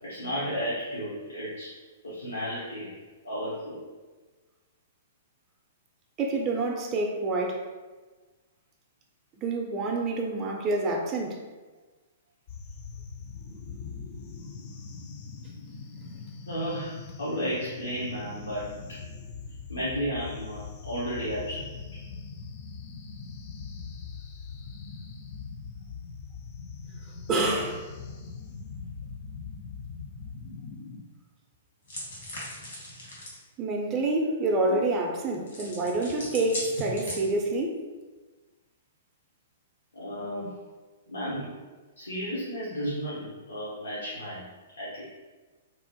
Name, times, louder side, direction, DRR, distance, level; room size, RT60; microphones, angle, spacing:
voice 1, 0.0-1.7 2.0-2.9 3.2-3.8 16.5-19.0 19.7-21.7 34.7-34.8 39.9-40.5 41.1-41.5 42.0-44.4 44.8-45.1, equal, 90° left, -9 dB, 0.8 m, -33 dB
voice 2, 6.2-7.6 9.4-11.4 27.3-27.8 33.6-37.8, right 2 dB, 30° right, 0 dB, 0.4 m, -27 dB
sound 1, 12.5-31.0, left 5 dB, 45° left, 0.3 m, -42 dB
sound 2, 31.9-33.4 35.5-37.6, left 1 dB, 70° left, 1.2 m, -38 dB
2.9 x 2.1 x 2.8 m, 1.3 s
figure-of-eight pair, 115°, 0 cm